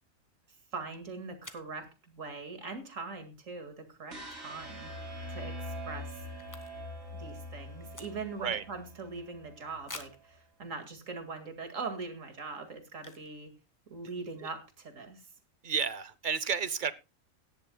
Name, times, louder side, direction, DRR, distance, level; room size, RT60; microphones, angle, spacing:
voice 1, 0.7-4.9 5.3-6.2 7.1-13.5 13.9-15.3, right 4 dB, 70° right, 2.4 m, -41 dB
sound 1, 1.4-1.8 4.7-5.0 5.3-5.4 5.6-7.0 7.3-8.5 9.0-9.1 9.8-10.3 11.0-11.1 11.6-11.8 12.9-13.4 13.7-13.8 13.9-14.3, left 2 dB, 15° left, 1.2 m, -49 dB
sound 2, 4.1-10.2, left 1 dB, 90° right, 3.6 m, -43 dB
voice 2, 15.6-16.9, right 6 dB, 45° right, 0.8 m, -31 dB
17.0 x 12.0 x 2.3 m
omnidirectional pair, 1.4 m